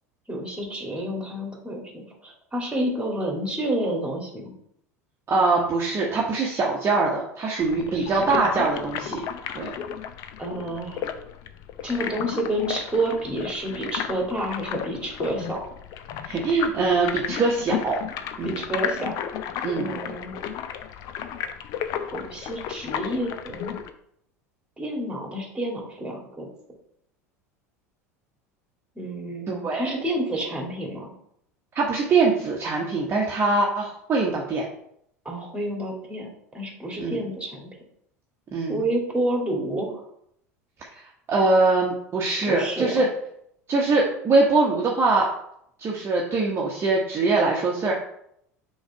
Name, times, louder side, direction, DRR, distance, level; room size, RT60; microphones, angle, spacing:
voice 1, 0.3-4.5 7.9-8.6 10.4-11.0 11.8-15.6 18.4-19.1 19.8-20.4 22.1-23.7 24.8-26.5 29.0-31.1 35.2-37.7 38.7-40.0 42.5-43.0, right 1 dB, 10° right, 0 dB, 2.2 m, -29 dB
voice 2, 5.3-9.2 9.5-9.7 16.2-18.0 18.4-18.5 19.6-20.0 29.5-29.9 31.7-34.6 37.0-37.2 38.5-38.8 40.9-43.1 43.7-45.3 45.8-47.9, right 3 dB, 30° right, -2 dB, 1.1 m, -23 dB
sound 1, 7.6-23.9, left 9 dB, 50° left, 0.5 m, -33 dB
6.3 x 3.2 x 4.7 m, 0.72 s
figure-of-eight pair, 75°, 9 cm